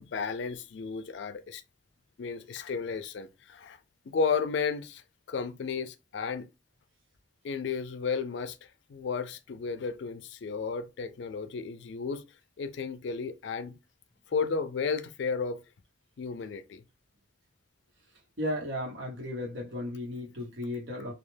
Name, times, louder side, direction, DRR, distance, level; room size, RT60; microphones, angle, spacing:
voice 1, 0.0-1.6 2.2-3.8 4.1-5.0 5.3-6.5 7.4-8.6 8.9-12.2 12.6-13.8 14.3-15.6 16.2-16.8, left 5 dB, 70° left, 0.4 m, -33 dB
voice 2, 18.4-21.1, left 1 dB, 75° right, 1.1 m, -35 dB
2.3 x 2.2 x 3.2 m
head